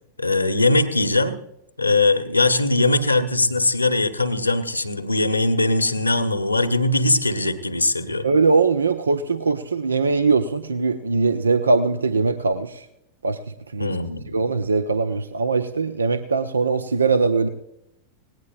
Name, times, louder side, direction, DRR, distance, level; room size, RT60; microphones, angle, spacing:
voice 1, 0.2-1.4 1.8-8.3 13.8-14.2, left 2 dB, 85° left, 9 dB, 1.1 m, -20 dB
voice 2, 8.2-12.9 13.2-13.4 13.7-13.9 14.3-17.5, right 4 dB, 75° right, 12 dB, 0.6 m, -21 dB
18.5 x 18.0 x 2.5 m, 0.84 s
figure-of-eight pair, 90°, 0 cm